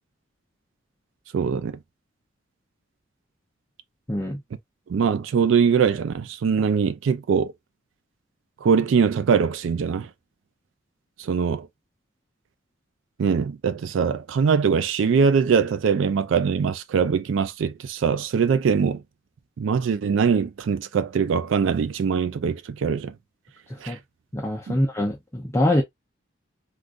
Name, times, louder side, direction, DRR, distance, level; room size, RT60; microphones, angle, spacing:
voice 1, 1.3-1.8 4.9-7.5 8.6-10.1 11.2-11.7 13.2-19.0 19.6-23.1 23.8-24.0 24.7-24.8, right 6 dB, 75° right, 0.3 m, -22 dB
voice 2, 4.1-4.4 23.9-24.0 24.3-25.8, left 1 dB, 15° left, 0.5 m, -24 dB
3.6 x 2.4 x 2.4 m
head